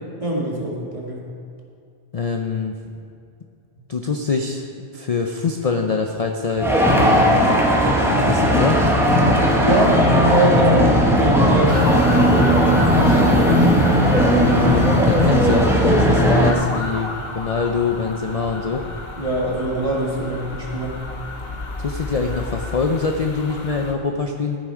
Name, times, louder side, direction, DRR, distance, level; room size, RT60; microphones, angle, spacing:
voice 1, 0.2-1.2 3.8-3.9 9.6-12.1 12.5-14.0 19.2-21.1, right 2 dB, 30° right, -3 dB, 2.1 m, -24 dB
voice 2, 2.1-2.8 3.9-4.7 4.9-7.6 8.1-8.8 14.5-18.8 21.8-24.6, left 4 dB, 40° left, 3 dB, 0.6 m, -24 dB
sound 1, 6.6-16.5, equal, ahead, 1.2 m, -16 dB
sound 2, 11.7-23.9, left 2 dB, 60° left, 1.3 m, -30 dB
14.5 x 7.5 x 4.9 m, 2.5 s
omnidirectional pair, 1.2 m